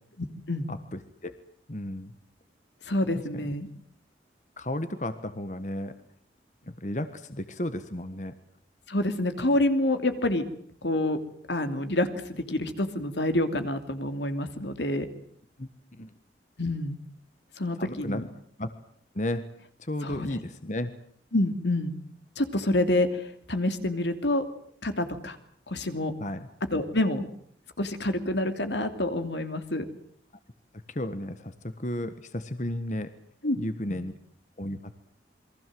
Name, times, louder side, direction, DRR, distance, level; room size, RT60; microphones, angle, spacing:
voice 1, 0.7-1.3 1.7-2.1 4.6-5.9 6.7-8.3 15.6-16.1 17.8-18.2 18.6-18.7 19.1-19.4 19.8-20.9 26.2-26.5 30.9-33.1 33.6-34.1 34.6-35.1, left 1 dB, 40° left, 10 dB, 1.4 m, -33 dB
voice 2, 2.8-3.7 8.9-10.4 10.8-11.2 11.5-15.1 16.6-17.0 17.6-18.3 20.0-20.3 21.3-21.9 22.4-24.4 24.8-25.4 25.7-26.1 26.7-27.2 27.8-29.9 33.4-33.6 33.9-34.0, left 1 dB, 75° left, 8 dB, 2.9 m, -27 dB
28.5 x 23.5 x 7.8 m, 0.63 s
head